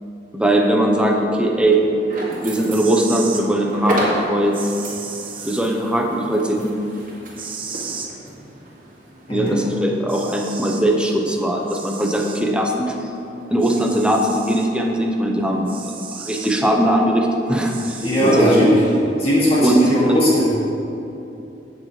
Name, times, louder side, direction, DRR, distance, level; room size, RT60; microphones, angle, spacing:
voice 1, 0.3-1.8 2.2-4.6 5.4-6.7 9.3-13.0 13.5-15.7 16.3-18.7 19.6-19.8 20.1-20.2, right 1 dB, 5° right, 1 dB, 0.9 m, -20 dB
sound 1, 0.9-20.0, right 1 dB, 45° right, 2.2 m, -35 dB
sound 2, 2.7-3.4 4.5-5.6 7.4-8.1 9.6-9.7 10.1-10.9 11.7-12.4 13.6-14.7 15.7-16.6 17.6-18.6, right 6 dB, 30° right, 0.8 m, -34 dB
voice 2, 18.0-18.8 19.2-20.5, equal, 35° left, -8 dB, 2.3 m, -17 dB
16.5 x 6.4 x 3.3 m, 2.8 s
head